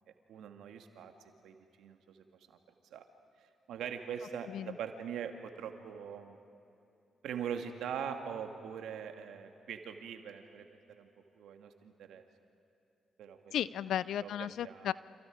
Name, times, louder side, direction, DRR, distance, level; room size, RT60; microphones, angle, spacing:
voice 1, 0.3-1.1 1.4-2.6 2.9-3.0 3.4-6.4 7.2-11.1 11.3-12.2 13.2-13.5 14.2-14.9, right 8 dB, 75° right, 6 dB, 1.8 m, -42 dB
voice 2, 13.5-14.9, left 10 dB, 70° left, 19 dB, 0.5 m, -34 dB
29.5 x 27.0 x 5.0 m, 2.7 s
hypercardioid pair, 45°, 0 cm